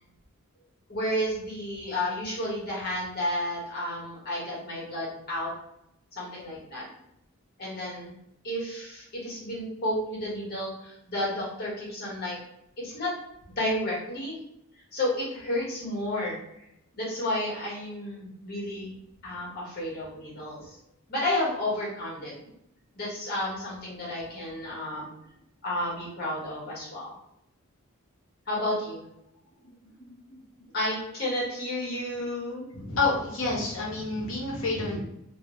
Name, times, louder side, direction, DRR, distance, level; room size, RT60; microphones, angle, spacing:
voice 1, 0.9-5.5 6.1-6.9 7.6-8.1 8.4-12.4 12.8-13.1 13.6-14.4 14.9-16.4 16.9-18.9 19.2-20.8 21.1-22.3 22.9-25.1 25.6-27.1 28.5-29.1 30.0-30.4 30.7-32.6, left 1 dB, 50° left, -6 dB, 1.0 m, -31 dB
voice 2, 32.7-35.0, left 3 dB, 65° left, -2 dB, 0.7 m, -28 dB
2.1 x 2.1 x 2.9 m, 0.78 s
head